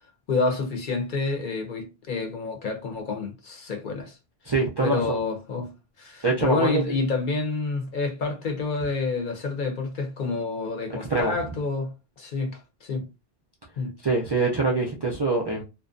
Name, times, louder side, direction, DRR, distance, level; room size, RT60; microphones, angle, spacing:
voice 1, 0.3-4.2 4.8-5.7 6.0-11.9 12.2-13.1 13.8-13.9, left 4 dB, 55° left, 0.8 m, -28 dB
voice 2, 4.5-5.2 6.2-7.0 11.1-11.3 14.0-15.6, right 3 dB, 45° right, 0.3 m, -24 dB
2.5 x 2.1 x 2.5 m
omnidirectional pair, 1.0 m